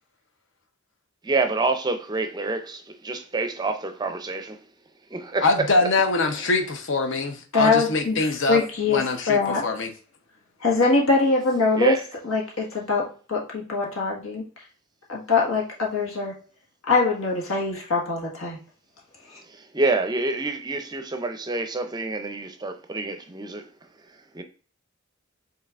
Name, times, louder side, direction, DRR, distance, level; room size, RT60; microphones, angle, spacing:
voice 1, 1.2-4.7 5.1-5.7 11.7-12.0 19.4-23.7 24.1-24.4, right 3 dB, 20° right, 0.5 m, -27 dB
voice 2, 5.4-9.9, left 3 dB, 65° left, 0.8 m, -24 dB
voice 3, 7.5-9.6 10.6-12.0 12.2-14.4 15.1-16.4 16.9-18.6, left 3 dB, 85° left, 1.6 m, -23 dB
5.5 x 3.8 x 2.5 m
head